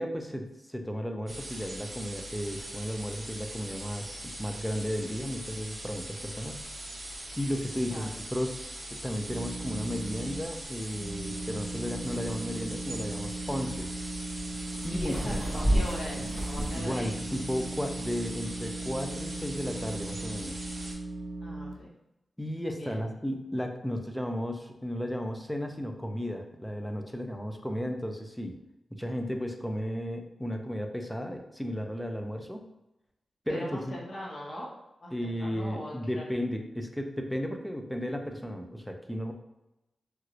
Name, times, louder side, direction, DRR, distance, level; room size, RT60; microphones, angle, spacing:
voice 1, 0.0-6.6 7.4-14.1 14.8-15.1 16.7-20.7 22.4-28.6 28.9-32.6 33.5-33.9 35.1-39.3, equal, 5° left, 4 dB, 0.3 m, -34 dB
sound 1, 1.3-20.9, right 1 dB, 45° right, 0.7 m, -41 dB
sound 2, 9.2-10.4 10.9-21.7, right 2 dB, 80° right, 0.4 m, -38 dB
sound 3, 11.9-16.8, equal, 20° left, 1.1 m, -32 dB
voice 2, 14.9-17.1 21.4-21.9 22.8-23.0 33.5-34.7 35.0-36.3, left 1 dB, 45° left, -5 dB, 1.0 m, -40 dB
3.0 x 2.4 x 2.9 m, 0.93 s
wide cardioid pair, 180°, 0 cm